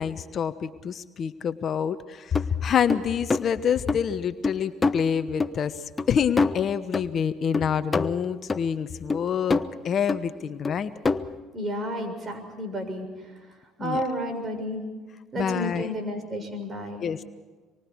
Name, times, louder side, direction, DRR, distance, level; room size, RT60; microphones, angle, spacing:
voice 1, 0.0-5.8 6.1-10.9 13.8-14.0 15.4-15.9 17.0-17.3, left 7 dB, 50° left, 10 dB, 1.1 m, -27 dB
sound 1, 2.3-2.4 2.9-3.4 3.9-4.0 4.4-5.0 5.4-5.5 6.0-6.1 6.4-7.2 7.5-8.7 9.1-9.8 10.1-10.2 10.6-11.4, left 3 dB, 25° left, 1.0 m, -25 dB
voice 2, 11.5-13.4 13.8-14.8 15.3-17.0, equal, 40° right, 6 dB, 6.8 m, -31 dB
27.0 x 24.0 x 4.8 m, 1.4 s
supercardioid pair, 75°, 0 cm